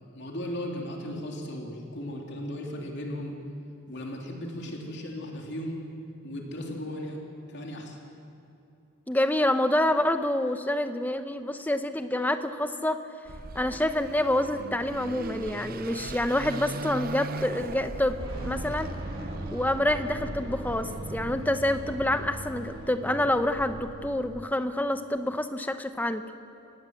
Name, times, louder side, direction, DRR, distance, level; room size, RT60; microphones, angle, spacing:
voice 1, 0.1-3.4 3.9-5.8 6.2-7.2 7.5-8.0, left 1 dB, 50° left, 0 dB, 3.2 m, -36 dB
voice 2, 9.1-13.0 13.5-18.2 18.4-18.9 19.5-26.2, left 1 dB, 10° left, 8 dB, 0.9 m, -27 dB
Car passing by / Accelerating revving vroom, 13.3-24.5, right 3 dB, 45° right, 0.6 m, -39 dB
sound 1, 18.2-23.7, equal, 20° right, 7.0 m, -41 dB
26.5 x 19.0 x 7.8 m, 2.8 s
head